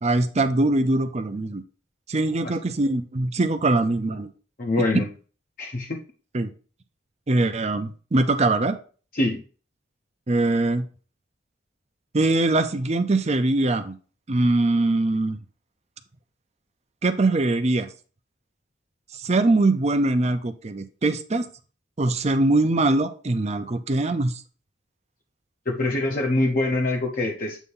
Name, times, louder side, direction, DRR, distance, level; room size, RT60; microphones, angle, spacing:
voice 1, 0.0-1.6 2.1-4.3 6.3-6.5 7.3-8.8 10.3-10.9 12.1-14.0 14.3-15.4 17.0-17.9 19.1-21.4 22.0-24.3, right 2 dB, 35° right, 9 dB, 0.6 m, -22 dB
voice 2, 4.6-5.1 5.6-6.0 9.1-9.4 25.7-27.6, left 2 dB, 45° left, -1 dB, 0.8 m, -24 dB
8.2 x 2.8 x 5.5 m, 0.38 s
head